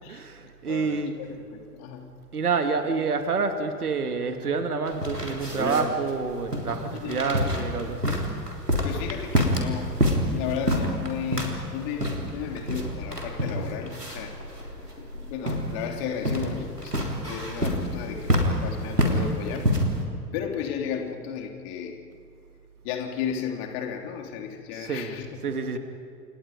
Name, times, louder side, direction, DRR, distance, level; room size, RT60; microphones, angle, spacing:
voice 1, 0.1-1.2 2.3-8.3 24.7-25.2 25.4-25.8, right 4 dB, 70° right, 7 dB, 2.5 m, -28 dB
voice 2, 0.7-2.1 6.9-7.4 8.8-9.9 10.2-14.4 15.0-17.0 17.2-19.7 20.3-22.0 22.8-25.8, left 8 dB, 40° left, 4 dB, 3.3 m, -34 dB
sound 1, 4.9-20.0, equal, 90° right, 3.7 m, -28 dB
29.5 x 28.0 x 5.2 m, 2.5 s
figure-of-eight pair, 95°, 46 cm